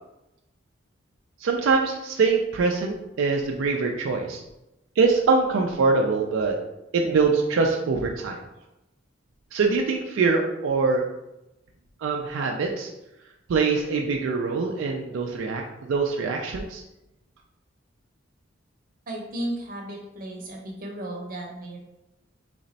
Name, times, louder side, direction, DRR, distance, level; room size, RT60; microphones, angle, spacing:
voice 1, 1.4-4.4 5.0-6.6 6.9-8.4 9.5-11.0 12.0-12.9 13.5-16.8, right 4 dB, 80° right, 1 dB, 0.4 m, -23 dB
voice 2, 19.1-21.8, right 1 dB, 45° right, -1 dB, 0.7 m, -34 dB
3.3 x 2.0 x 3.9 m, 0.93 s
head